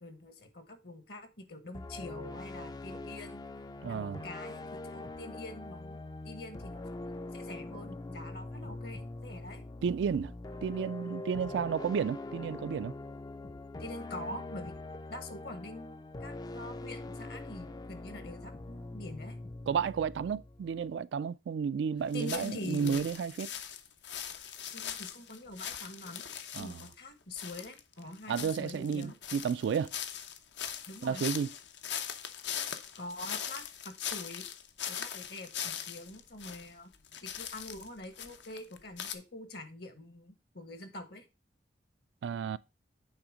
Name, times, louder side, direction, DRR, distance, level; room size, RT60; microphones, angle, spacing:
voice 1, 0.0-3.4 3.8-6.0 6.2-9.6 13.8-14.7 15.1-19.4 22.1-23.1 24.7-29.1 30.9-31.2 33.0-34.4 34.9-36.9 37.2-41.2, left 2 dB, 60° left, 1.4 m, -45 dB
sound 1, 1.7-20.9, left 2 dB, 20° left, 0.3 m, -43 dB
voice 2, 3.8-4.2 9.8-10.3 10.6-12.9 19.7-23.5 26.5-26.8 28.3-29.9 31.0-31.5 42.2-42.6, right 6 dB, 75° right, 0.3 m, -32 dB
sound 2, 22.1-26.9 27.4-36.7 36.9-39.2, left 9 dB, 75° left, 0.8 m, -41 dB
8.9 x 3.5 x 5.0 m
head